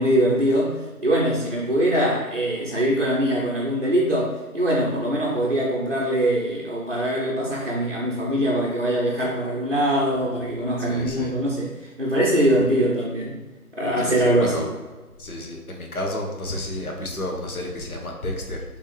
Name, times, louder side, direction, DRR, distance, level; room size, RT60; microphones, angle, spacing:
voice 1, 0.0-13.4 13.7-14.6, right 1 dB, 40° right, -5 dB, 0.6 m, -22 dB
voice 2, 10.8-11.3 14.0-14.6 15.2-18.6, left 1 dB, 70° left, 1 dB, 1.1 m, -31 dB
4.1 x 3.5 x 3.1 m, 1.2 s
figure-of-eight pair, 170°, 46 cm